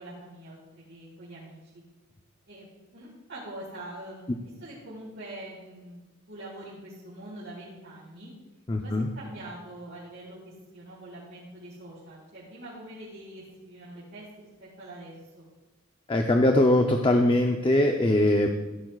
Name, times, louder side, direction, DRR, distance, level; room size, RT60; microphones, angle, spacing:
voice 1, 0.0-1.8 2.5-6.0 6.3-8.3 8.8-15.4, right 1 dB, 60° right, -10 dB, 4.6 m, -44 dB
voice 2, 8.7-9.1 16.1-18.5, left 1 dB, 25° left, 4 dB, 0.6 m, -21 dB
16.5 x 12.0 x 2.4 m, 1.1 s
head